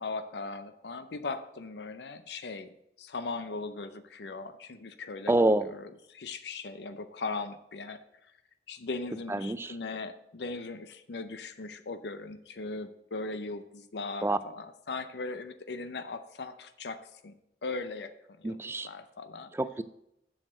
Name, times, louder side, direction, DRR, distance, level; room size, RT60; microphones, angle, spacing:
voice 1, 0.0-5.3 5.6-8.3 8.7-17.3 17.6-19.5, left 3 dB, 70° left, 10 dB, 0.6 m, -39 dB
voice 2, 5.3-5.7 9.3-9.8 14.2-14.4 18.4-18.9 19.5-19.8, right 2 dB, 15° right, 13 dB, 0.4 m, -27 dB
7.5 x 6.4 x 6.4 m, 0.81 s
head